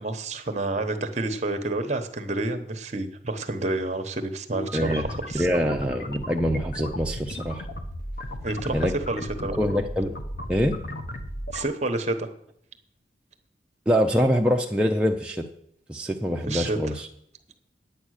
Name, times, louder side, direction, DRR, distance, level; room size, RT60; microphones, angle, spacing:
voice 1, 0.0-5.5 8.4-9.6 11.5-12.3 16.5-17.0, right 2 dB, 40° right, 8 dB, 1.0 m, -29 dB
sound 1, 4.5-11.6, equal, 55° left, 1.1 m, -35 dB
voice 2, 4.7-5.1 5.3-7.7 8.7-8.9 9.6-10.1 10.5-10.8 13.9-15.4 15.9-17.1, equal, 5° right, 0 dB, 0.5 m, -24 dB
9.3 x 8.7 x 6.4 m, 0.70 s
head